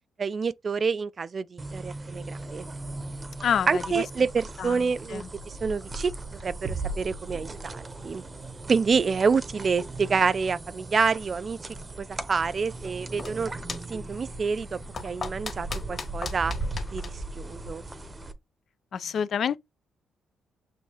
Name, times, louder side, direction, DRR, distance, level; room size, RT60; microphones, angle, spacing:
voice 1, 0.2-2.7 3.7-6.1 6.4-8.2 8.7-11.6 12.0-13.5 13.9-16.5 16.9-17.9, right 5 dB, 40° right, 0.3 m, -27 dB
sound 1, 1.6-18.3, right 2 dB, 25° right, 0.7 m, -38 dB
voice 2, 3.4-4.3 4.6-5.3 18.9-19.6, left 7 dB, 60° left, 0.4 m, -29 dB
sound 2, 6.6-8.4, right 3 dB, 70° right, 0.8 m, -36 dB
sound 3, 12.8-18.2, left 4 dB, 40° left, 1.4 m, -40 dB
6.3 x 2.6 x 2.8 m
cardioid pair, 90°, 0 cm